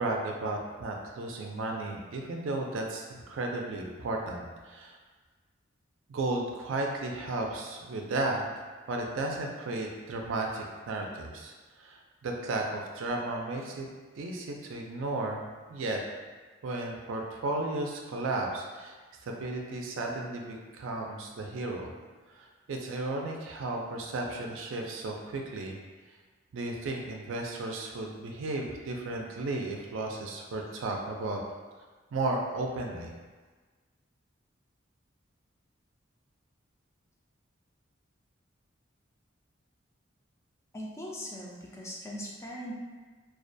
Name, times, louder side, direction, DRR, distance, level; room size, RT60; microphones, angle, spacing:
voice 1, 0.0-5.0 6.1-8.4 8.9-13.9 14.2-15.4 15.7-16.0 16.6-19.0 19.2-21.9 22.3-25.8 26.5-31.4 32.1-33.1, right 2 dB, 75° right, 1 dB, 0.4 m, -34 dB
voice 2, 40.7-42.7, equal, 15° left, -3 dB, 0.3 m, -40 dB
2.3 x 2.2 x 2.6 m, 1.4 s
head